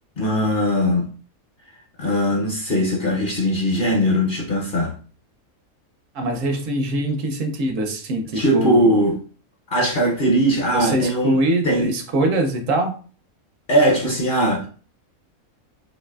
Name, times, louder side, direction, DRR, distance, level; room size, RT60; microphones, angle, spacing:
voice 1, 0.2-1.1 2.0-5.0 8.3-9.2 9.7-11.4 11.6-11.9 13.7-14.7, equal, 50° left, 0.7 m, -20 dB
voice 2, 6.1-9.0 10.7-12.9, right 1 dB, 75° right, 1.0 m, -23 dB
4.1 x 2.6 x 2.2 m
omnidirectional pair, 1.4 m